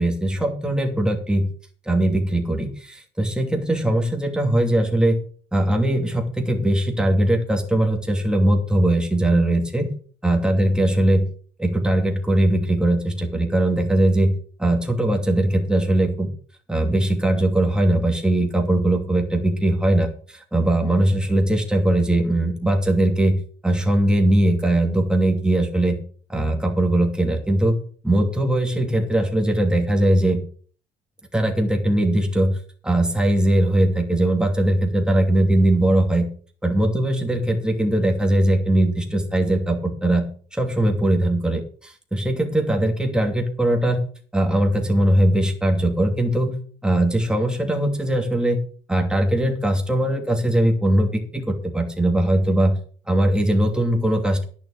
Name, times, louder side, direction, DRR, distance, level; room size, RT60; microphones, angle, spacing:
voice 1, 0.0-1.5 1.9-5.2 5.5-9.9 10.2-11.3 11.6-14.3 14.6-16.3 16.7-23.4 23.6-26.0 26.3-27.8 28.0-30.4 31.3-32.5 32.8-36.3 36.6-40.2 40.5-44.0 44.3-46.6 46.8-48.6 48.9-52.7 53.1-54.4, right 1 dB, 5° right, 2 dB, 2.7 m, -20 dB
10.5 x 7.4 x 6.4 m, 0.43 s
cardioid pair, 110°, 17 cm